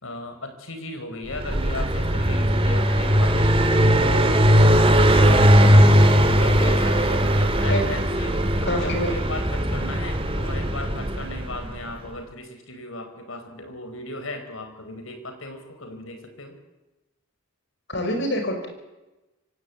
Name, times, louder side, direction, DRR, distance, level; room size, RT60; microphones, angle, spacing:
voice 1, 0.0-3.6 3.9-4.5 6.4-16.6, left 2 dB, 75° left, 7 dB, 4.8 m, -36 dB
Car passing by, 1.3-11.9, equal, 25° right, 2.1 m, -19 dB
voice 2, 8.6-9.1 17.9-18.7, left 1 dB, 55° left, 4 dB, 5.5 m, -25 dB
25.0 x 17.0 x 8.5 m, 1.1 s
head